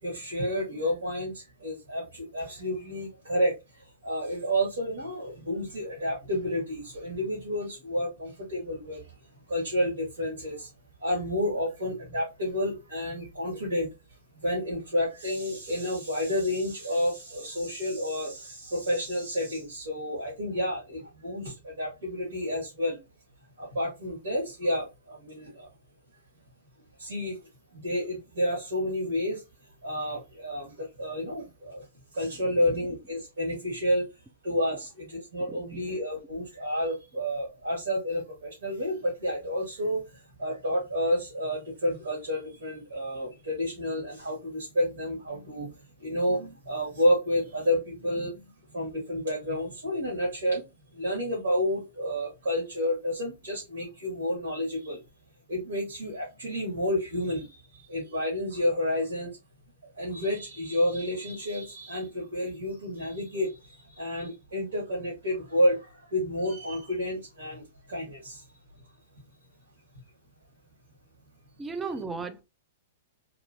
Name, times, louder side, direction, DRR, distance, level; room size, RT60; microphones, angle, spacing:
voice 1, 0.0-9.2 9.5-10.7 11.0-13.9 14.3-23.0 23.6-25.7 27.0-27.4 27.7-29.4 29.8-31.8 32.1-34.1 34.4-45.7 46.0-50.6 50.9-55.0 55.5-59.4 59.9-68.5, equal, 80° right, 2.2 m, -30 dB
voice 2, 35.5-35.8 71.6-72.4, right 4 dB, 15° right, 0.5 m, -35 dB
3.7 x 2.9 x 2.7 m
hypercardioid pair, 115°, 0 cm